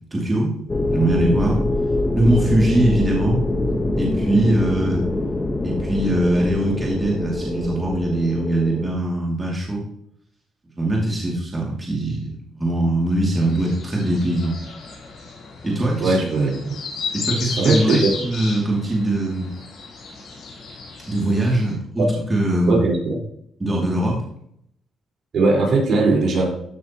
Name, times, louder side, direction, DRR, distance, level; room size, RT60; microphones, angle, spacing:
voice 1, 0.1-0.5 0.9-1.6 2.2-3.4 4.0-5.0 5.6-9.8 10.8-14.6 15.6-16.2 17.1-19.5 21.1-22.8 23.6-24.2, right 1 dB, 20° right, -3 dB, 2.4 m, -21 dB
sound 1, 0.7-8.9, left 2 dB, 20° left, 1.1 m, -24 dB
sound 2, 13.3-21.7, left 4 dB, 70° left, 3.9 m, -33 dB
voice 2, 16.0-16.8 17.6-18.1 22.7-23.2 25.3-26.5, right 3 dB, 60° right, -3 dB, 4.3 m, -19 dB
14.0 x 6.4 x 2.9 m, 0.71 s
cardioid pair, 90°, 0 cm